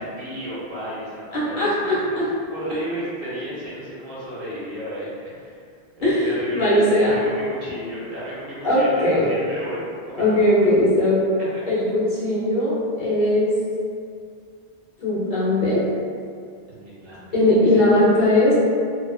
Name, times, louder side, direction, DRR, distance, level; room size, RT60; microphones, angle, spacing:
voice 1, 0.0-1.8 2.5-5.6 5.9-10.5 16.7-18.2, right 1 dB, 65° right, -8 dB, 0.9 m, -33 dB
voice 2, 1.3-2.2 6.0-7.2 8.6-9.3 10.2-11.2 11.7-13.5 15.0-15.8 17.3-18.5, left 1 dB, 55° left, -10 dB, 0.8 m, -19 dB
2.4 x 2.3 x 2.3 m, 2.3 s
omnidirectional pair, 1.0 m